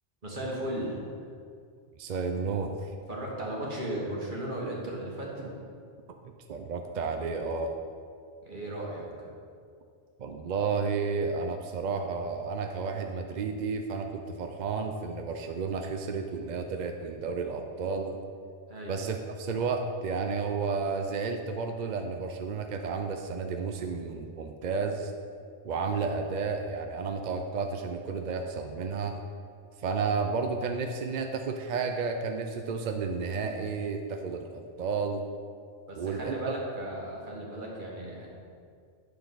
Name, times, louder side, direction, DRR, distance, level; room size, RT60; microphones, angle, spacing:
voice 1, 0.2-1.1 3.1-5.6 8.4-9.3 18.7-19.0 35.9-38.3, right 1 dB, 45° right, -3 dB, 1.7 m, -36 dB
voice 2, 2.0-2.9 6.2-7.7 10.2-18.2 18.9-25.1 25.6-29.2 29.8-35.2 36.0-36.3, right 4 dB, 60° right, 5 dB, 0.5 m, -32 dB
9.3 x 6.6 x 4.0 m, 2.3 s
omnidirectional pair, 1.2 m